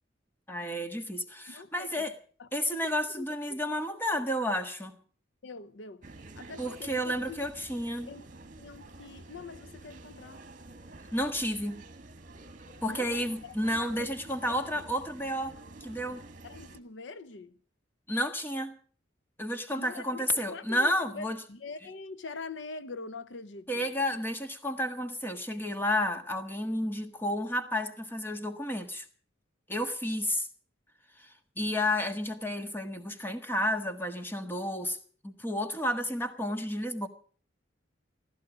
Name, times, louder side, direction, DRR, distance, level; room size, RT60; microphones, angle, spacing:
voice 1, 0.5-2.1 2.5-5.0 6.6-8.1 11.1-11.8 12.8-16.2 18.1-18.7 19.4-21.4 23.7-29.0 29.7-30.5 31.2-35.0 35.2-37.1, left 1 dB, 10° left, 1.5 m, -31 dB
voice 2, 1.5-2.0 2.4-3.6 5.4-6.1 6.4-7.4 8.1-8.3 8.6-10.4 12.8-14.1 14.4-14.8 16.4-17.5 19.7-23.9, left 4 dB, 75° left, 0.7 m, -44 dB
sound 1, 6.0-16.8, right 2 dB, 45° right, 1.6 m, -49 dB
15.5 x 13.5 x 6.2 m
head